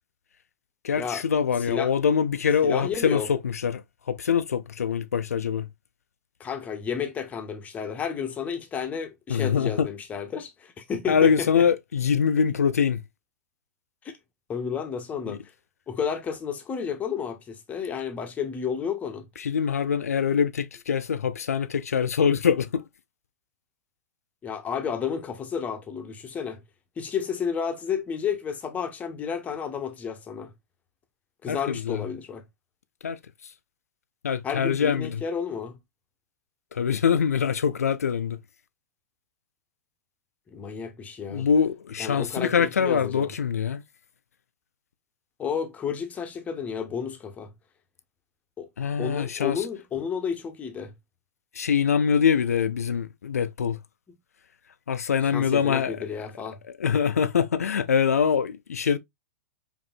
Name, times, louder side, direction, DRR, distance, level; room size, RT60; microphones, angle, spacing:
voice 1, 0.8-3.8 4.1-5.7 9.3-9.9 11.1-13.0 15.3-15.4 19.4-22.8 31.5-32.1 33.0-33.2 33.4-33.5 34.2-35.2 36.7-38.4 41.3-43.8 48.8-49.7 51.5-53.8 54.9-56.3 56.8-59.0, left 7 dB, 75° left, 0.4 m, -24 dB
voice 2, 2.6-3.3 6.4-11.6 14.0-14.2 14.5-15.4 15.9-19.3 24.4-26.6 27.0-30.5 31.4-32.4 34.4-35.8 40.5-41.5 42.0-43.3 45.4-47.5 48.6-48.7 49.0-50.9 55.3-56.6, left 7 dB, 15° left, 0.8 m, -31 dB
5.1 x 2.6 x 2.4 m
figure-of-eight pair, 105°, 8 cm